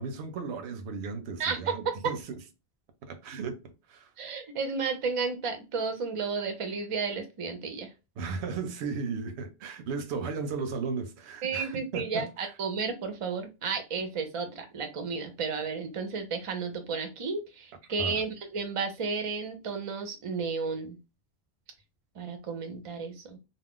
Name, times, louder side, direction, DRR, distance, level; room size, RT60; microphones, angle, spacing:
voice 1, 0.0-2.2 3.0-3.6 3.9-4.1 8.2-12.3 18.0-18.2, right 5 dB, 85° right, 0.8 m, -35 dB
voice 2, 1.4-2.1 4.2-7.9 11.4-21.0 22.2-23.4, right 5 dB, 45° right, 0.5 m, -32 dB
2.4 x 2.1 x 3.6 m
omnidirectional pair, 1.1 m